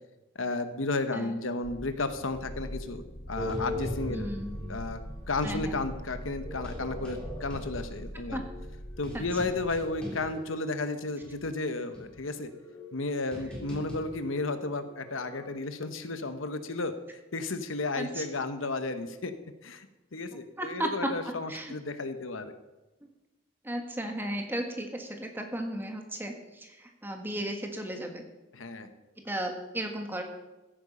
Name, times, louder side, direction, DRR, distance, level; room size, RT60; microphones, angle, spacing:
voice 1, 0.3-4.3 4.7-5.0 5.3-8.4 9.0-12.5 12.9-16.9 17.3-19.3 19.6-19.9 20.1-22.5 28.5-28.9, left 3 dB, 85° left, 9 dB, 1.1 m, -33 dB
sound 1, 1.6-9.8, equal, 45° left, 1.8 m, -42 dB
sound 2, 3.4-5.7 6.4-10.8 11.2-11.3 11.9-15.5, left 1 dB, 5° left, 3.9 m, -40 dB
voice 2, 4.1-4.5 5.4-5.8 8.3-8.4 9.1-9.2 18.0-18.2 20.6-21.1 21.5-21.7 23.6-28.2 29.2-30.2, right 1 dB, 10° right, 3 dB, 1.5 m, -34 dB
15.0 x 8.9 x 5.6 m, 1.1 s
head